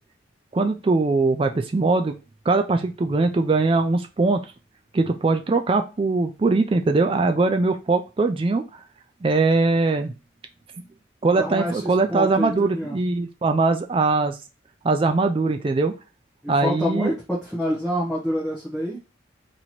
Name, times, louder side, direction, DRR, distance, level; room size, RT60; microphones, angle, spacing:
voice 1, 0.5-2.1 2.5-4.4 4.9-8.8 9.2-10.1 11.2-14.4 14.8-15.9 16.5-17.1, right 3 dB, 25° right, 6 dB, 0.3 m, -21 dB
voice 2, 11.4-13.0 16.4-19.0, equal, 5° right, -4 dB, 0.8 m, -27 dB
3.0 x 2.8 x 4.0 m, 0.30 s
head